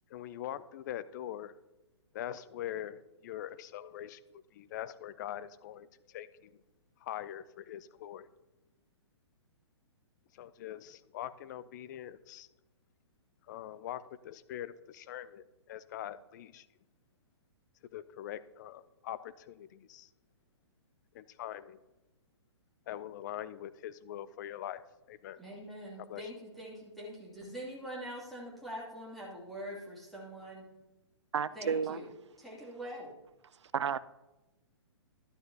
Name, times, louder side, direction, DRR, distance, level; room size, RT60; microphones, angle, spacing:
voice 1, 0.1-1.5 2.1-4.2 4.5-6.5 7.0-8.3 10.3-12.5 13.5-16.7 17.9-20.1 21.1-21.8 22.9-24.8 25.1-25.4 26.0-26.3, left 12 dB, 40° left, 14 dB, 0.5 m, -43 dB
voice 2, 25.4-30.7 31.5-32.1 32.4-33.1, equal, ahead, -6 dB, 2.8 m, -44 dB
voice 3, 31.3-32.0 33.6-34.0, right 7 dB, 70° right, 17 dB, 0.4 m, -32 dB
12.5 x 9.1 x 2.9 m, 1.0 s
figure-of-eight pair, 120°, 15 cm